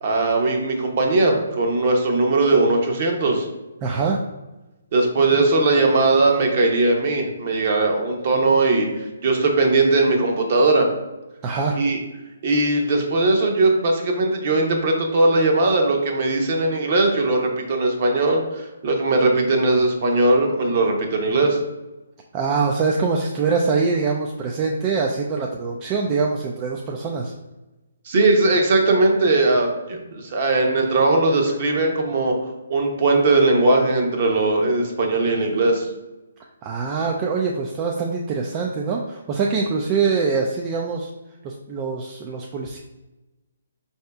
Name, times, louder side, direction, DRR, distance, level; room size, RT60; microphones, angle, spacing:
voice 1, 0.0-3.5 4.9-10.9 11.7-12.0 12.4-21.6 28.1-32.3 32.7-35.9, right 2 dB, 45° right, 1 dB, 0.9 m, -19 dB
voice 2, 3.8-4.2 11.4-11.8 22.3-27.3 36.6-41.1 41.4-42.8, right 4 dB, 25° right, 0 dB, 0.4 m, -24 dB
4.6 x 2.7 x 3.4 m, 1.0 s
hypercardioid pair, 150°, 0 cm